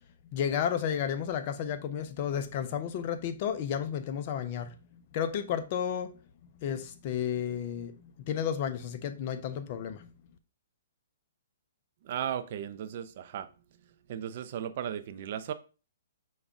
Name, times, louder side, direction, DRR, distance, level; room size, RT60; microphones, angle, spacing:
voice 1, 0.3-6.2 6.6-10.1, left 8 dB, 45° left, 0.6 m, -32 dB
voice 2, 12.0-13.5 14.1-15.5, right 9 dB, 50° right, 0.5 m, -35 dB
5.3 x 2.3 x 3.6 m
hypercardioid pair, 140°, 0 cm